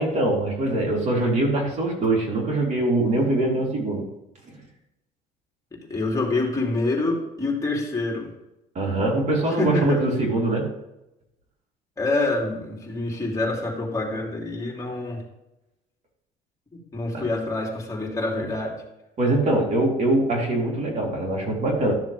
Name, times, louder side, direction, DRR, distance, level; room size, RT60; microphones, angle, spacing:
voice 1, 0.0-4.1 8.7-10.7 17.1-17.2 19.2-21.9, right 2 dB, 45° right, -3 dB, 3.9 m, -23 dB
voice 2, 5.9-8.3 9.5-10.0 12.0-15.2 16.9-18.8, left 2 dB, 20° left, -2 dB, 3.5 m, -26 dB
13.0 x 6.9 x 3.6 m, 0.88 s
cardioid pair, 110°, 17 cm